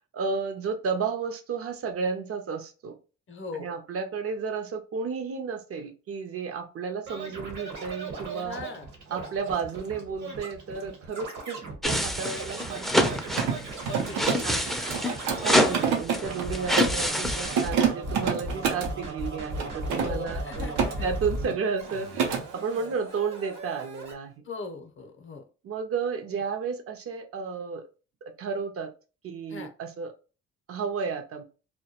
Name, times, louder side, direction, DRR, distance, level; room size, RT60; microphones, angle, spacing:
voice 1, 0.1-3.0 3.6-8.6 9.1-11.6 11.8-13.1 14.4-14.6 15.4-24.3 25.6-27.8 28.4-28.9 29.2-30.1 30.7-31.4, right 5 dB, 50° right, 6 dB, 0.5 m, -32 dB
voice 2, 3.3-3.7 8.3-8.9 13.9-14.4 20.0-21.1 22.8-23.0 24.4-25.4 29.5-29.7, left 4 dB, 45° left, 6 dB, 0.6 m, -40 dB
Scratching (performance technique), 7.1-15.9 16.2-21.5 21.8-24.1, right 2 dB, 70° right, 1.0 m, -37 dB
sound 1, 11.8-17.7, left 1 dB, ahead, 0.4 m, -27 dB
Mechanisms, 12.9-17.0 17.4-18.9 19.6-20.9 21.2-21.6 21.9-22.4, right 6 dB, 90° right, 0.6 m, -28 dB
2.2 x 2.1 x 2.8 m, 0.34 s
cardioid pair, 90°, 30 cm